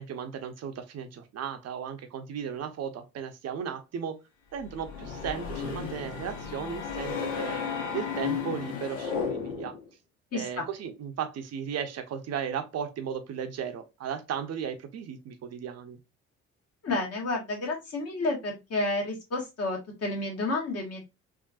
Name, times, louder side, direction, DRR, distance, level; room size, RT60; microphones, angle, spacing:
voice 1, 0.0-4.2 4.5-7.6 7.9-9.7 10.3-16.0, right 8 dB, 50° right, 0.7 m, -35 dB
sound 1, 4.6-9.9, left 6 dB, 80° left, 0.8 m, -34 dB
voice 2, 10.3-10.6 16.8-21.0, left 2 dB, 45° left, 1.5 m, -30 dB
3.5 x 2.5 x 2.4 m
hypercardioid pair, 55°, 33 cm